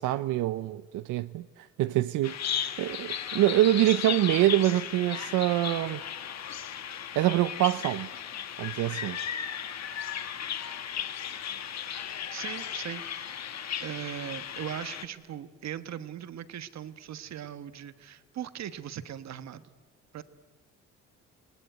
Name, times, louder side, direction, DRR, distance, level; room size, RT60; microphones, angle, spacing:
voice 1, 0.0-6.0 7.2-8.1 8.6-9.2, right 15 dB, 90° right, 0.6 m, -25 dB
Bird vocalization bird call bird song, 2.2-15.0, left 9 dB, 60° left, 1.4 m, -36 dB
voice 2, 12.3-13.4 13.8-19.8 20.1-20.2, right 10 dB, 65° right, 1.3 m, -39 dB
27.0 x 19.0 x 9.3 m
cardioid pair, 90°, 30 cm